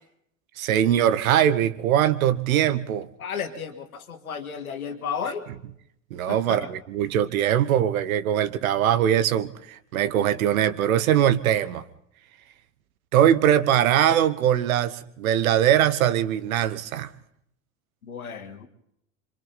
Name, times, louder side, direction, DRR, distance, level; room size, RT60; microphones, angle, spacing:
voice 1, 0.6-3.1 6.1-11.8 13.1-17.1, right 10 dB, 75° right, 15 dB, 1.2 m, -21 dB
voice 2, 3.2-5.4 6.3-6.7 18.0-18.7, left 6 dB, 90° left, 6 dB, 1.8 m, -33 dB
26.0 x 26.0 x 4.1 m, 0.73 s
hypercardioid pair, 75°, 42 cm